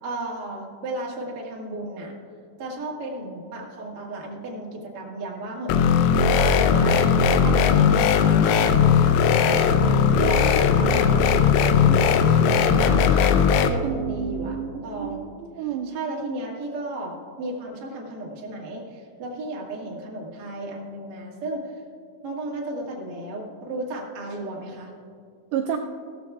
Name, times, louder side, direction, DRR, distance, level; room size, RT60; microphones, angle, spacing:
voice 1, 0.0-2.1 2.6-7.0 7.3-9.8 10.1-12.2 12.5-15.2 15.6-21.7 22.2-24.9, right 2 dB, 50° right, -3 dB, 1.2 m, -34 dB
sound 1, 5.7-13.7, left 6 dB, 85° left, 2.7 m, -18 dB
voice 2, 13.8-15.9 25.5-25.8, right 9 dB, 80° right, 3 dB, 2.2 m, -30 dB
16.5 x 14.0 x 2.4 m, 2.4 s
omnidirectional pair, 4.9 m